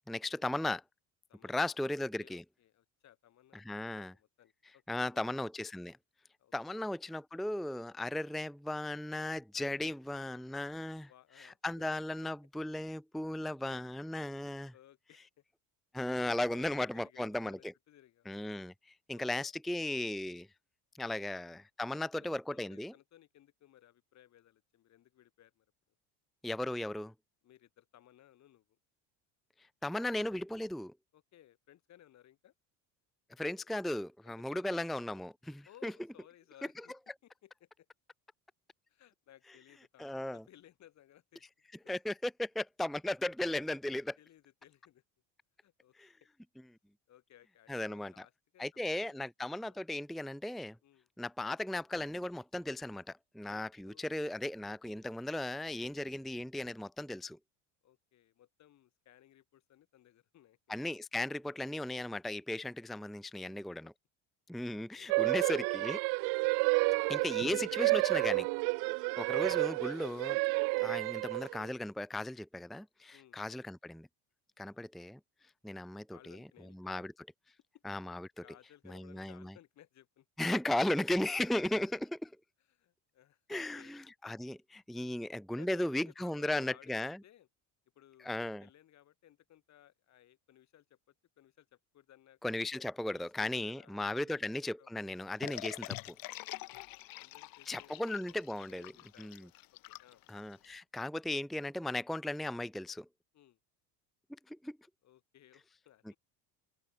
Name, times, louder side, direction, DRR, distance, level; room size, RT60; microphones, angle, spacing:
voice 1, 0.1-0.8 1.4-2.4 3.5-4.1 4.9-6.0 6.5-11.1 11.4-14.7 15.9-17.7 18.3-20.5 21.0-22.9 26.4-27.1 29.8-30.9 33.4-35.9 40.0-40.4 41.9-44.2 46.0-46.1 47.7-48.2 48.6-50.8 51.2-57.4 60.7-63.9 64.5-66.0 67.1-68.5 69.2-70.4 70.8-74.1 74.6-75.2 75.6-76.4 76.8-77.1 77.8-78.3 78.9-79.5 80.4-82.3 83.5-87.2 88.2-88.7 92.4-96.2 97.7-98.9 99.2-99.5 100.3-103.1 104.5-104.8, left 1 dB, ahead, 0.7 m, -36 dB
voice 2, 1.3-5.3 6.4-6.8 11.1-11.8 14.7-15.3 16.9-18.3 19.1-19.5 21.1-21.3 21.9-25.7 27.4-28.7 31.1-32.5 34.2-34.8 35.7-36.9 37.2-37.9 38.9-41.4 44.2-45.0 45.6-46.1 47.1-49.8 50.8-51.1 53.8-54.3 57.8-60.8 63.4-63.7 64.7-65.5 66.3-66.7 68.8-69.0 71.1-71.3 73.1-73.4 74.6-74.8 76.1-76.8 77.7-77.8 78.4-80.3 82.6-83.9 85.0-85.2 85.6-86.9 87.2-87.5 88.0-91.0 91.4-92.4 93.1-94.5 94.8-94.9 96.6-100.2 103.3-103.6 105.0-106.2, left 12 dB, 45° left, 5.6 m, -62 dB
sound 1, 65.1-71.7, right 31 dB, 70° right, 0.8 m, -30 dB
sound 2, 95.4-100.7, left 19 dB, 60° left, 3.2 m, -45 dB
cardioid pair, 145°, 40 cm